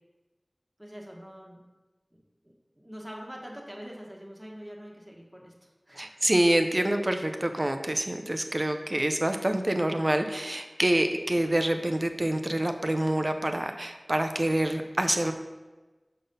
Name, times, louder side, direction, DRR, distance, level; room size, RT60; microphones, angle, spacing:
voice 1, 0.8-1.6 2.1-6.1, equal, 15° right, -1 dB, 1.3 m, -44 dB
voice 2, 6.0-15.3, right 1 dB, 40° right, 6 dB, 0.5 m, -26 dB
6.6 x 4.0 x 5.3 m, 1.2 s
wide cardioid pair, 45°, 0 cm